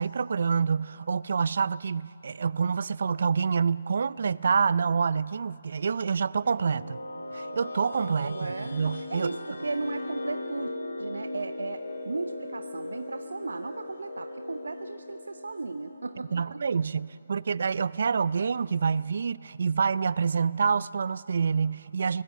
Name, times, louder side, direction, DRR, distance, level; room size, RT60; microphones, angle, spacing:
voice 1, 0.0-7.0 7.3-9.3 16.3-22.2, right 5 dB, 60° right, 20 dB, 0.5 m, -27 dB
sound 1, 6.2-17.0, left 1 dB, 80° left, 2.0 m, -39 dB
voice 2, 8.0-8.8 9.1-10.7 11.0-16.4, right 3 dB, 80° right, 9 dB, 0.8 m, -36 dB
23.5 x 18.5 x 8.3 m, 2.6 s
figure-of-eight pair, 145°, 0 cm